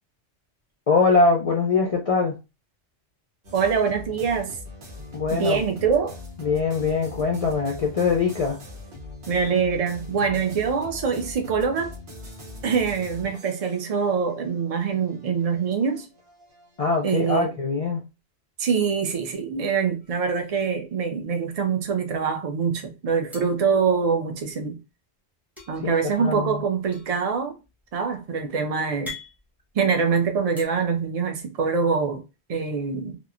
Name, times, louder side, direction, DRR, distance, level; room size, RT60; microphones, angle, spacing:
voice 1, 0.9-2.4 5.1-5.6 6.4-8.6 16.8-18.1 25.8-25.9 26.2-26.6, left 4 dB, 60° left, 0.3 m, -22 dB
sound 1, 3.4-17.3, left 3 dB, 80° right, 1.2 m, -42 dB
voice 2, 3.5-4.6 5.3-6.2 9.3-11.9 12.6-16.1 17.0-17.5 18.6-24.8 25.7-27.6 27.9-29.1 29.7-32.2 32.5-33.2, right 6 dB, 45° right, 0.5 m, -24 dB
sound 2, 20.0-20.9 21.2-21.4 21.6-22.4 23.3-24.6 25.6-30.7, left 3 dB, ahead, 0.8 m, -45 dB
2.9 x 2.1 x 2.4 m
omnidirectional pair, 1.1 m